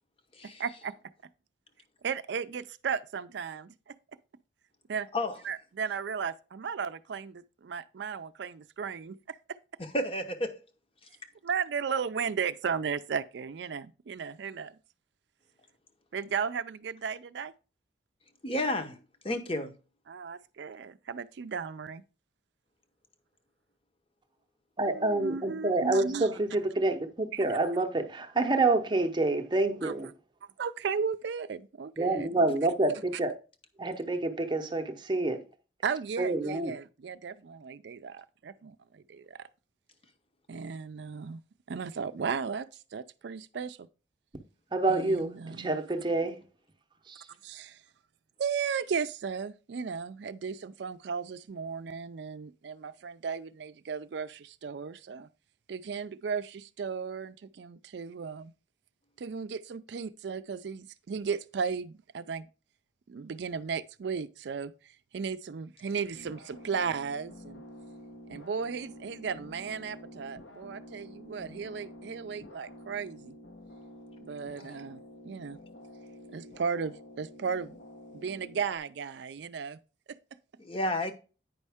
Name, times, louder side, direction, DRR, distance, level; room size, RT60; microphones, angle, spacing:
voice 1, 0.4-0.9 2.0-4.0 4.9-5.1 5.4-9.4 11.4-14.8 16.1-17.5 20.1-22.0 24.9-26.3 27.3-27.4 29.8-29.9 30.6-32.3 35.8-39.5 40.5-41.4 41.7-43.8 44.9-45.8 47.4-47.8 48.4-55.3 55.7-58.5 59.2-62.5 63.1-64.7 65.1-67.6 68.3-73.4 74.2-75.6 76.3-77.8 78.1-79.8 80.1-80.2, right 6 dB, 65° right, 0.4 m, -35 dB
voice 2, 9.8-10.5 18.4-19.0 19.2-19.7 74.6-74.7 80.6-81.1, left 1 dB, 30° left, 0.8 m, -31 dB
voice 3, 24.8-30.1 32.0-33.4 33.8-35.4 36.2-36.8 44.7-46.4 47.1-47.3, right 2 dB, 25° right, 0.7 m, -28 dB
sound 1, 66.1-78.8, equal, 75° left, 1.1 m, -49 dB
9.1 x 5.3 x 3.4 m
head